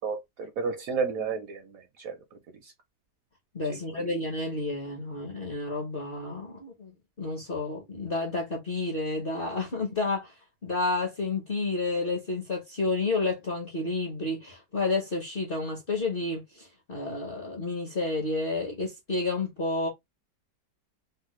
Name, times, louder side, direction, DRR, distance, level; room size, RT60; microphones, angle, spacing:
voice 1, 0.0-2.2 2.6-2.7 3.7-4.1, right 5 dB, 70° right, 0.8 m, -32 dB
voice 2, 3.5-6.9 7.2-10.3 10.6-19.9, left 3 dB, 45° left, 0.7 m, -30 dB
3.3 x 2.1 x 2.9 m
omnidirectional pair, 1.8 m